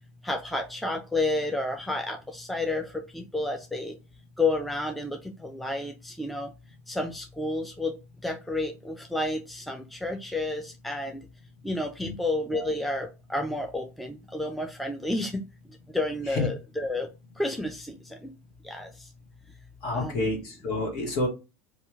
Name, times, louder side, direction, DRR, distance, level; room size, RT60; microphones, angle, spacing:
voice 1, 0.2-3.9 4.4-6.5 6.9-7.9 8.2-11.1 11.6-15.4 15.9-17.1 17.4-17.9 18.6-18.9 19.9-20.3, left 2 dB, ahead, 3 dB, 0.5 m, -30 dB
voice 2, 19.8-21.3, left 2 dB, 50° left, 0 dB, 1.4 m, -28 dB
2.8 x 2.4 x 3.5 m, 0.27 s
figure-of-eight pair, 80°, 8 cm